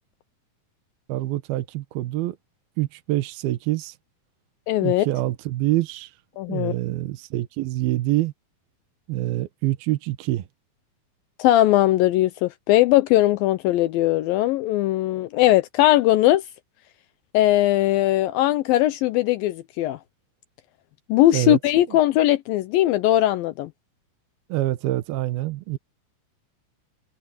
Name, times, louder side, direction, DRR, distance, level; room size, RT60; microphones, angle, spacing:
voice 1, 1.1-2.4 2.8-4.0 4.8-6.1 6.5-8.3 9.1-10.5 21.3-21.6 24.5-25.8, right 16 dB, 80° right, 2.8 m, -26 dB
voice 2, 4.7-5.1 6.4-6.8 11.4-16.4 17.3-20.0 21.1-23.7, left 15 dB, 80° left, 2.3 m, -19 dB
omnidirectional pair, 4.4 m